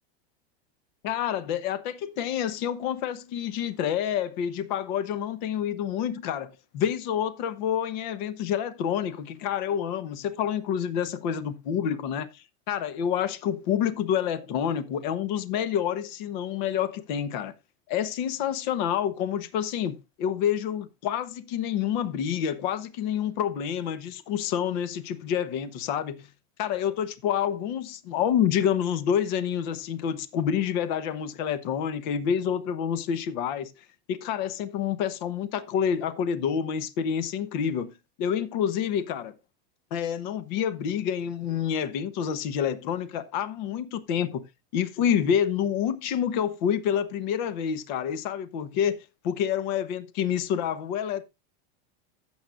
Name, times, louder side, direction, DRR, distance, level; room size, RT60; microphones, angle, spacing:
voice 1, 1.0-17.5 17.9-26.3 26.6-33.7 34.1-37.9 38.2-39.3 39.9-44.4 44.7-51.2, left 9 dB, 45° left, 1.0 m, -28 dB
15.0 x 7.2 x 2.5 m
supercardioid pair, 165°, 31 cm